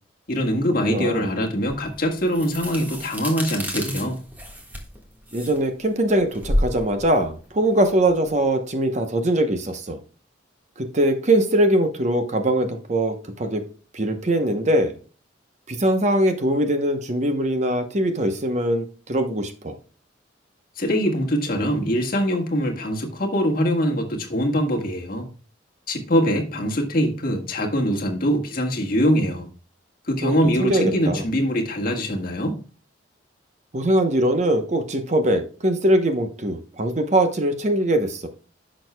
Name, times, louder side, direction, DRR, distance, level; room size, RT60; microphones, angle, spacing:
voice 1, 0.3-4.2 20.8-25.3 25.9-29.5 30.1-32.6, equal, 50° left, 1.5 m, -23 dB
voice 2, 0.9-1.3 5.3-10.0 10.8-13.6 13.9-14.9 15.7-19.7 30.2-30.3 30.6-31.2 33.7-38.3, right 1 dB, 40° right, 0.9 m, -22 dB
sound 1, 1.7-8.5, equal, 10° right, 1.5 m, -30 dB
10.5 x 6.3 x 2.2 m
head